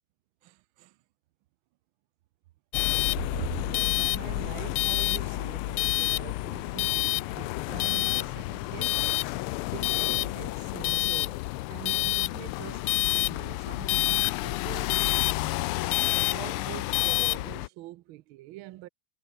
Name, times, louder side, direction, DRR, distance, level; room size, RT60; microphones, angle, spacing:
voice 1, 0.4-1.0 3.1-9.0 9.4-11.4 11.7-15.0 16.3-18.9, right 16 dB, 75° right, 1.4 m, -43 dB
sound 1, 2.7-17.7, left 19 dB, 85° left, 1.5 m, -28 dB
omnidirectional pair, 2.3 m